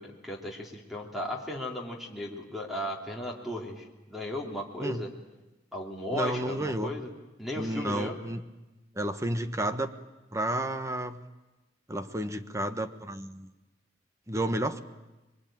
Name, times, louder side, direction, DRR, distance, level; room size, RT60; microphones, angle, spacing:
voice 1, 0.0-5.1 5.7-7.1 7.4-8.2, left 1 dB, ahead, -1 dB, 3.2 m, -36 dB
voice 2, 6.1-6.9 7.6-8.4 9.0-10.0 10.3-11.2 11.9-13.5 14.3-14.8, right 1 dB, 15° right, 9 dB, 1.2 m, -31 dB
27.0 x 23.0 x 9.0 m, 1.0 s
head